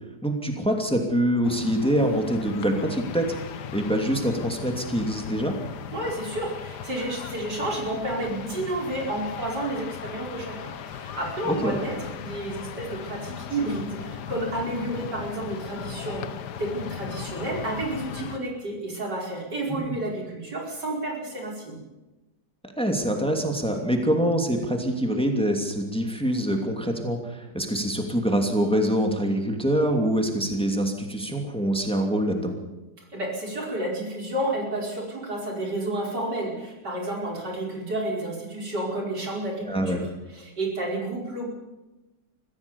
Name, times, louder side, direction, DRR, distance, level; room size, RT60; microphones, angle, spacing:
voice 1, 0.2-5.5 11.4-11.8 19.7-19.9 22.8-32.6 39.6-40.0, equal, 5° left, 3 dB, 2.7 m, -25 dB
sound 1, 1.4-18.4, left 9 dB, 80° left, 1.5 m, -37 dB
voice 2, 5.9-21.8 33.1-41.5, right 1 dB, 90° right, -1 dB, 5.6 m, -31 dB
24.0 x 15.5 x 7.2 m, 1.0 s
omnidirectional pair, 1.8 m